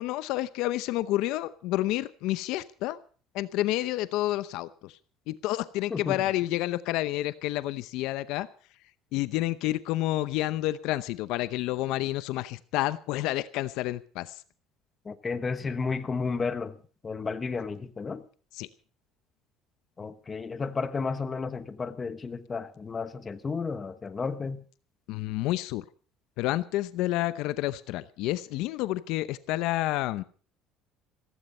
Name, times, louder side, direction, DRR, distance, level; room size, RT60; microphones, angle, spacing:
voice 1, 0.0-3.0 3.3-4.9 5.3-8.5 9.1-14.3 18.5-18.7 25.1-25.8 26.4-30.2, left 16 dB, 65° left, 0.7 m, -29 dB
voice 2, 15.0-16.8 17.0-18.2 20.0-24.6, left 4 dB, 20° left, 1.0 m, -32 dB
15.5 x 14.5 x 5.4 m
cardioid pair, 170°, 0 cm